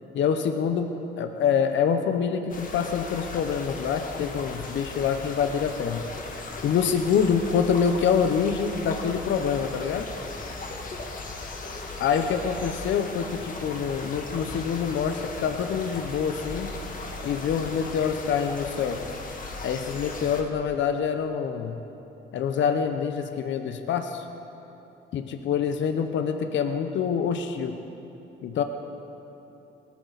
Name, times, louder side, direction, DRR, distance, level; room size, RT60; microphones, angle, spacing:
voice 1, 0.1-0.9 1.2-6.0 6.6-10.1 12.0-16.7 17.2-19.0 19.6-21.8 22.3-24.2 25.1-27.8 28.4-28.6, left 7 dB, 70° left, 7 dB, 0.8 m, -26 dB
sound 1, 2.5-20.4, left 3 dB, 45° left, 1.8 m, -37 dB
19.0 x 13.0 x 4.1 m, 3.0 s
cardioid pair, 90°, 20 cm